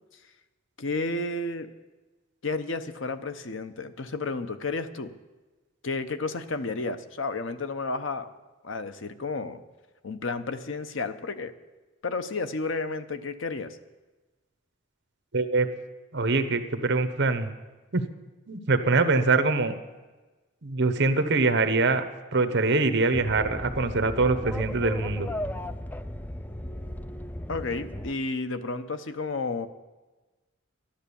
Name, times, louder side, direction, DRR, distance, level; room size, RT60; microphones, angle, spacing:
voice 1, 0.8-1.7 2.4-5.1 5.8-8.3 8.6-9.6 10.0-11.5 12.0-13.8 27.5-29.7, left 3 dB, 65° left, 10 dB, 0.8 m, -32 dB
voice 2, 15.3-15.7 16.1-17.5 17.9-18.0 18.5-19.7 20.6-22.0 22.3-25.3, right 3 dB, 55° right, 10 dB, 1.0 m, -23 dB
sound 1, 23.1-28.1, left 1 dB, 10° left, 0.3 m, -36 dB
11.5 x 11.5 x 7.0 m, 1.2 s
head